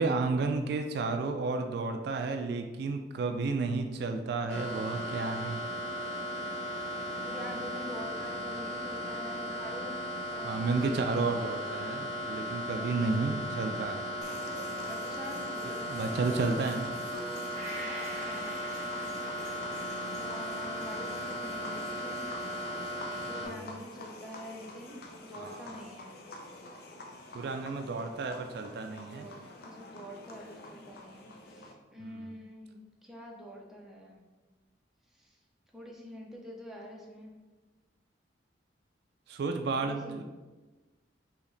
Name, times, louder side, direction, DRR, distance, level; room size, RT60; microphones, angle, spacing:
voice 1, 0.0-5.6 10.4-14.1 15.9-17.0 23.4-23.8 25.4-25.7 27.3-29.3 32.0-32.3 39.3-40.2, right 3 dB, 60° right, 6 dB, 0.3 m, -32 dB
sound 1, 4.5-23.5, equal, 80° left, 0.9 m, -37 dB
voice 2, 7.2-10.0 10.3-10.8 12.7-13.2 14.5-16.5 18.0-18.7 20.1-22.3 23.2-26.2 29.1-34.2 35.2-35.4 35.7-37.3 39.8-40.2, equal, ahead, -2 dB, 0.6 m, -46 dB
sound 2, 14.2-31.7, left 2 dB, 55° left, 0.5 m, -48 dB
Gong, 17.6-25.2 25.6-25.7, right 1 dB, 40° right, 0.8 m, -49 dB
4.8 x 2.8 x 3.2 m, 1.2 s
head